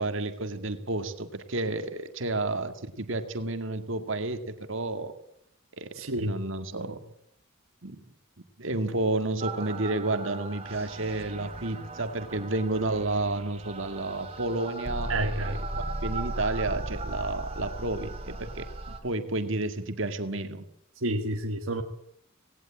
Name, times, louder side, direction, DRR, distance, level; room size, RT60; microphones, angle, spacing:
voice 1, 0.0-5.2 5.8-5.9 6.2-7.0 7.8-8.0 8.6-15.6 16.0-20.6, right 2 dB, 60° right, 8 dB, 2.0 m, -31 dB
voice 2, 5.9-6.4 15.1-15.6 21.0-21.8, right 1 dB, 80° right, 4 dB, 1.5 m, -29 dB
sound 1, 9.4-19.0, right 2 dB, 30° right, 2.8 m, -37 dB
18.5 x 17.5 x 8.6 m, 0.73 s
head